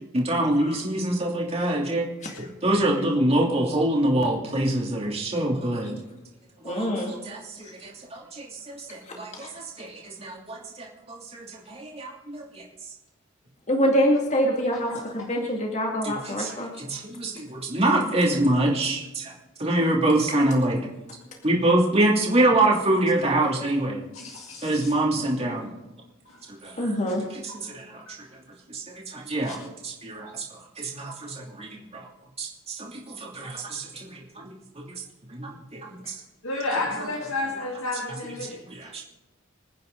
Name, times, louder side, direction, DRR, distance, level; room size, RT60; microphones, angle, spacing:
voice 1, 0.1-2.0 2.4-6.0 6.6-12.6 16.0-16.5 16.8-19.3 19.6-20.9 21.4-24.0 24.6-25.7 26.5-26.9 27.6-28.0 28.7-32.0 32.4-34.5 34.8-35.0 35.3-36.2 38.6-39.0, right 1 dB, 30° right, -2 dB, 2.9 m, -25 dB
voice 2, 6.6-7.1 9.1-9.5 13.7-16.7 26.8-27.2 36.0-36.1, equal, 35° left, 0 dB, 2.3 m, -25 dB
voice 3, 14.9-15.3 24.1-24.9 26.3-26.4 27.1-27.2 27.5-27.6 28.1-28.2 29.5-29.6 36.4-38.6, left 2 dB, 80° left, 0 dB, 1.9 m, -32 dB
27.0 x 9.5 x 4.0 m, 1.0 s
head